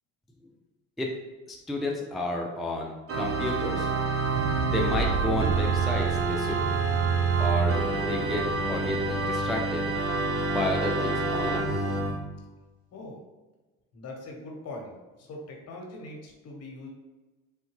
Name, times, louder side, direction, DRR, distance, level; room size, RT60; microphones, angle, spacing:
voice 1, 1.5-3.9 4.6-6.7 7.4-7.8 8.1-9.9 10.5-11.8, left 1 dB, ahead, 0 dB, 0.3 m, -31 dB
Organ, 3.1-12.2, right 4 dB, 50° right, 0.7 m, -27 dB
sound 1, 4.2-8.4 8.9-9.0, right 2 dB, 65° right, 1.4 m, -36 dB
voice 2, 12.9-13.2 13.9-16.9, left 2 dB, 55° left, 0 dB, 1.0 m, -42 dB
3.6 x 2.1 x 3.1 m, 1.2 s
supercardioid pair, 85°, 31 cm